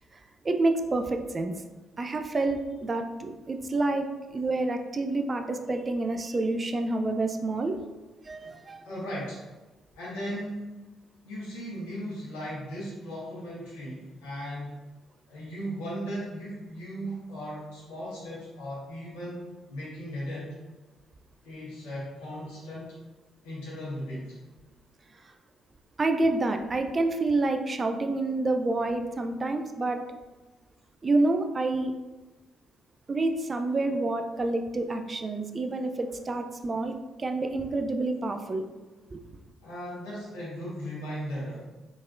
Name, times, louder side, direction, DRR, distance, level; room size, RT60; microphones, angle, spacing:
voice 1, 0.4-1.5 2.0-4.1 4.3-7.8 8.3-8.8 26.0-30.0 31.0-31.9 33.1-36.9 37.2-38.7 39.1-39.2, right 2 dB, 35° right, 6 dB, 0.4 m, -28 dB
voice 2, 8.4-9.4 9.9-10.8 11.2-14.8 15.3-19.4 19.7-20.5 21.4-22.9 23.4-24.4 39.6-41.6, equal, 75° left, -8 dB, 1.3 m, -37 dB
3.9 x 3.6 x 2.5 m, 1.2 s
figure-of-eight pair, 40°, 0 cm